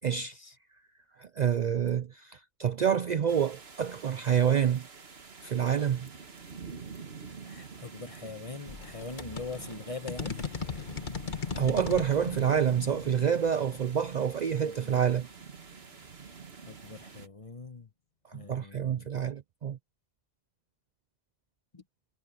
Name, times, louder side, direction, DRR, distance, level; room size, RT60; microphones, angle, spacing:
voice 1, 0.0-0.3 1.2-4.8 5.4-6.1 11.6-15.3 18.3-19.8, right 8 dB, 55° right, 0.6 m, -27 dB
sound 1, 3.3-17.3, right 5 dB, 75° right, 1.9 m, -48 dB
voice 2, 7.5-10.4 14.5-14.9 16.7-17.9 18.3-19.1 21.7-21.8, left 3 dB, 30° left, 1.5 m, -42 dB
sound 2, 8.7-15.1, left 5 dB, 50° left, 1.5 m, -39 dB
omnidirectional pair, 1.1 m